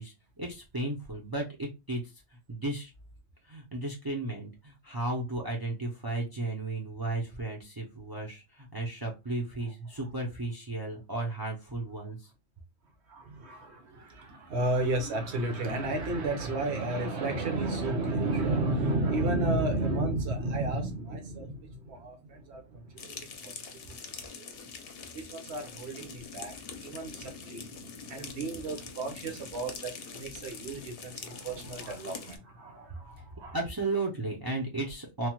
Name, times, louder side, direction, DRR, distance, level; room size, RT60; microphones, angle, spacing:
voice 1, 0.0-2.0 2.5-2.9 3.5-12.3 33.5-35.3, right 2 dB, 30° right, 0.4 m, -34 dB
voice 2, 13.1-24.5 25.1-33.6, right 2 dB, 70° right, 1.1 m, -33 dB
sound 1, 23.0-32.4, left 5 dB, 65° left, 0.8 m, -44 dB
3.2 x 2.1 x 2.9 m
omnidirectional pair, 1.2 m